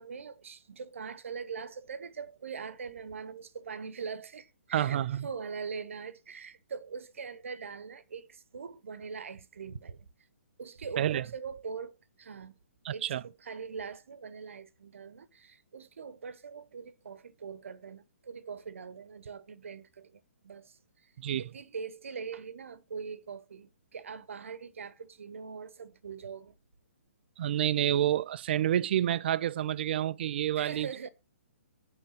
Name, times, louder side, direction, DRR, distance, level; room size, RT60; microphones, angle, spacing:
voice 1, 0.0-10.1 10.6-11.9 12.2-12.5 12.9-21.1 21.4-26.6 30.6-31.1, right 5 dB, 70° right, 0.9 m, -42 dB
voice 2, 4.7-5.3 11.0-11.2 12.8-13.2 21.2-21.4 27.4-30.9, right 11 dB, 50° right, 0.4 m, -28 dB
9.1 x 3.5 x 6.4 m
figure-of-eight pair, 130°, 7 cm